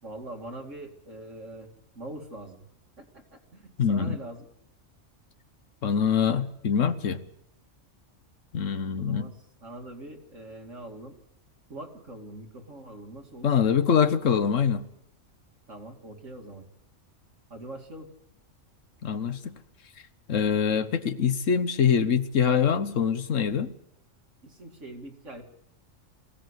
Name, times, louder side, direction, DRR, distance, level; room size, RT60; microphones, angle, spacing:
voice 1, 0.0-2.7 3.0-4.5 9.0-9.4 9.6-11.2 11.7-13.5 15.7-16.7 17.5-18.1 24.4-25.4, right 1 dB, 70° right, 3.0 m, -42 dB
voice 2, 3.8-4.2 5.8-7.2 8.5-9.3 13.4-14.9 19.0-19.6 20.3-23.7, left 7 dB, 75° left, 1.4 m, -24 dB
23.0 x 16.5 x 8.2 m
omnidirectional pair, 1.3 m